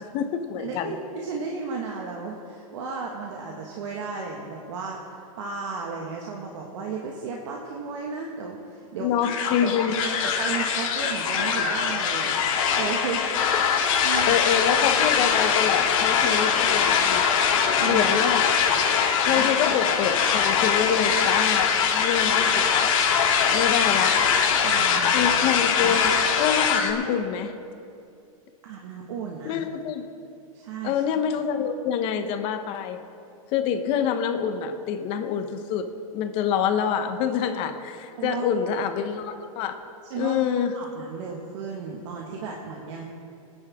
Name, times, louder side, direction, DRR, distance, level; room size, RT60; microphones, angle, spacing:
voice 1, 0.0-1.0 9.0-9.9 14.3-17.2 17.8-18.5 19.3-22.9 23.5-24.2 25.1-27.5 29.4-30.0 30.8-33.0 33.5-35.9 36.1-39.8 40.2-40.7, left 8 dB, 30° left, 7 dB, 0.9 m, -26 dB
voice 2, 0.6-9.1 9.6-9.9 10.4-13.4 14.0-14.4 17.8-18.0 19.3-19.5 24.6-25.3 28.6-29.6 30.5-31.0 38.2-38.6 40.1-40.4 40.7-43.0, right 5 dB, 55° right, 0 dB, 1.5 m, -34 dB
sound 1, 9.2-26.9, left 7 dB, 60° left, 2.9 m, -22 dB
28.5 x 9.9 x 3.6 m, 2.5 s
supercardioid pair, 165°, 18 cm